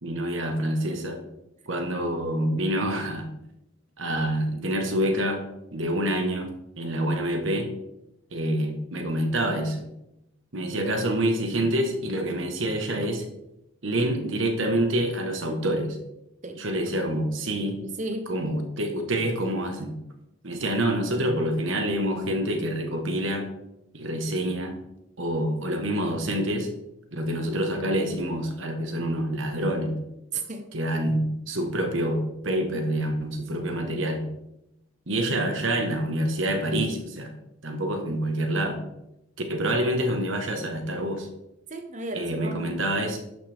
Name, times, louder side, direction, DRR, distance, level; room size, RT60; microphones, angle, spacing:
voice 1, 0.0-1.2 1.6-3.3 4.0-5.4 5.7-7.7 8.3-9.9 10.5-13.2 13.8-16.0 16.5-17.8 18.3-20.0 20.4-23.5 23.9-24.8 25.2-26.7 27.1-30.0 30.7-34.3 35.1-37.3 37.6-38.8 39.5-41.3 42.1-43.2, right 1 dB, 70° right, 5 dB, 1.4 m, -27 dB
voice 2, 17.8-18.3 30.3-30.7 33.8-34.0 41.7-42.7, right 2 dB, 35° right, 6 dB, 0.9 m, -34 dB
11.0 x 6.4 x 3.5 m, 0.86 s
head